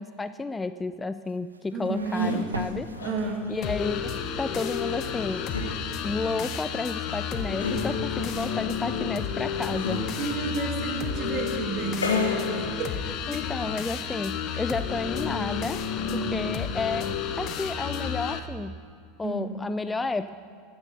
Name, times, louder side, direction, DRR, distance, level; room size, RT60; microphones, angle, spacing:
voice 1, 0.0-2.9 3.5-4.1 4.4-5.4 6.0-10.1 13.3-15.8 16.1-17.1 17.4-18.8 19.2-20.4, left 3 dB, 15° left, 12 dB, 0.3 m, -31 dB
sound 1, 1.3-4.0, right 4 dB, 80° right, 0.4 m, -41 dB
voice 2, 1.7-2.6 3.0-3.6 10.2-13.0 13.3-13.5 14.5-14.6 16.0-16.3 19.2-19.5, right 4 dB, 40° right, 4 dB, 1.8 m, -31 dB
sound 2, 1.8-13.2, left 3 dB, 75° left, 1.3 m, -35 dB
sound 3, 3.6-18.4, left 7 dB, 40° left, 0.9 m, -31 dB
14.5 x 9.4 x 5.4 m, 2.4 s
figure-of-eight pair, 80°, 0 cm